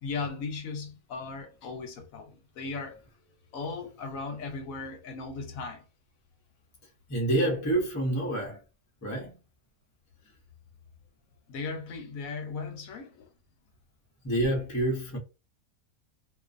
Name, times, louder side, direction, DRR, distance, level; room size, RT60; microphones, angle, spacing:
voice 1, 0.0-3.0 3.5-5.8 11.5-13.3, left 4 dB, 75° left, 1.0 m, -37 dB
voice 2, 7.1-8.6 9.0-9.3 14.2-15.2, right 1 dB, 25° left, 0.4 m, -27 dB
2.5 x 2.3 x 2.4 m
omnidirectional pair, 1.5 m